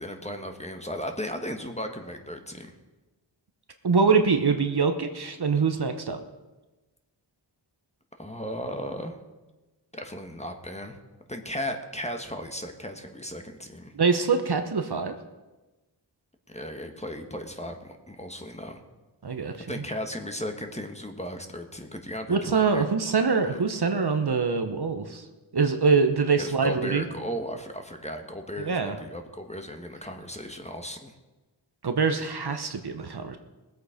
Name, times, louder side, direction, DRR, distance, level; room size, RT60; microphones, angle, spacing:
voice 1, 0.0-2.7 8.2-9.2 9.9-11.0 11.3-13.9 16.5-18.8 19.7-22.8 23.5-23.6 26.4-31.1, equal, 15° left, 5 dB, 1.4 m, -36 dB
voice 2, 3.8-6.2 13.9-15.2 19.2-19.8 22.3-25.2 25.5-27.0 28.6-29.0 31.8-33.4, right 5 dB, 55° right, 7 dB, 1.1 m, -24 dB
20.0 x 8.2 x 5.1 m, 1.1 s
wide cardioid pair, 70°, 48 cm